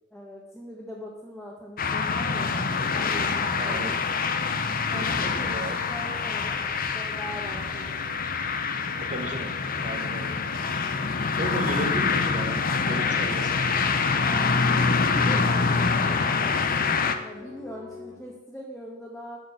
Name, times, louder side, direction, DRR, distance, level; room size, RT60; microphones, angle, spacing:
voice 1, 0.1-2.7 3.0-3.9 4.9-8.0 14.1-19.4, equal, 5° left, -5 dB, 1.7 m, -42 dB
sound 1, 1.8-17.2, left 4 dB, 45° left, 0.8 m, -25 dB
voice 2, 3.5-3.9 4.9-5.8 9.0-9.5 9.8-10.4 11.4-13.6, right 1 dB, 40° right, 4 dB, 1.5 m, -34 dB
sound 2, 7.1-18.2, left 3 dB, 90° left, 4.2 m, -46 dB
11.5 x 6.6 x 6.7 m, 0.97 s
head